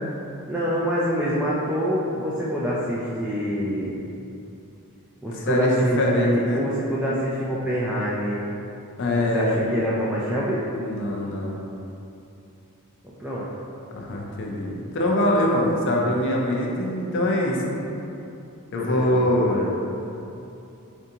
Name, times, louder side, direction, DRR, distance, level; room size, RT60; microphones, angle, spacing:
voice 1, 0.5-3.9 5.2-8.4 9.2-10.6 13.0-13.5 18.7-19.7, equal, 5° right, -8 dB, 0.3 m, -26 dB
voice 2, 5.5-6.6 9.0-9.7 10.8-11.6 13.9-17.8 18.7-19.7, left 1 dB, 55° left, -1 dB, 0.5 m, -23 dB
4.4 x 2.5 x 2.7 m, 2.8 s
head